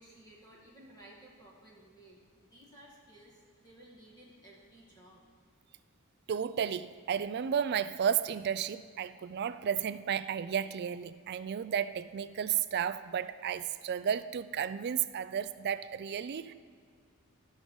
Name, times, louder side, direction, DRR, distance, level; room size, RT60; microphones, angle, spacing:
voice 1, 0.0-5.2, right 1 dB, 20° left, 2.1 m, -56 dB
voice 2, 6.3-16.5, right 8 dB, 50° right, 0.3 m, -33 dB
15.0 x 6.3 x 4.0 m
head